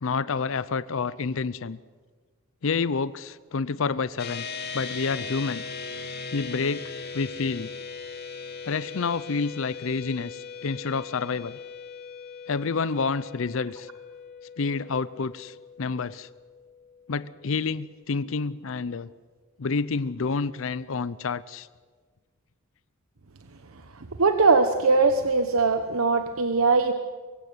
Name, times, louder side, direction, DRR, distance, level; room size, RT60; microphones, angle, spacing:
voice 1, 0.0-1.8 2.6-4.5 4.7-5.6 6.3-7.7 8.7-11.6 12.5-13.9 14.6-16.3 17.1-19.1 19.6-21.7, left 4 dB, 65° left, 17 dB, 0.6 m, -29 dB
sound 1, 4.2-17.8, left 5 dB, 50° left, 2.8 m, -39 dB
voice 2, 24.2-26.9, right 4 dB, 85° right, 8 dB, 1.1 m, -21 dB
23.0 x 16.5 x 9.6 m, 1.4 s
head